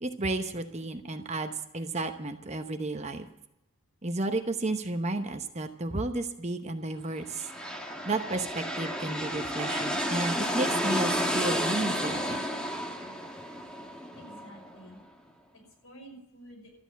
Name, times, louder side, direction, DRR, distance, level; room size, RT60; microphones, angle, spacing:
voice 1, 0.0-3.3 4.0-7.5 8.0-12.4, right 2 dB, 30° right, 7 dB, 0.9 m, -32 dB
sound 1, 7.2-14.9, equal, 5° left, 1.3 m, -31 dB
voice 2, 14.1-15.0 15.5-16.7, right 1 dB, 75° left, 0 dB, 5.8 m, -50 dB
13.5 x 8.9 x 9.3 m, 0.86 s
head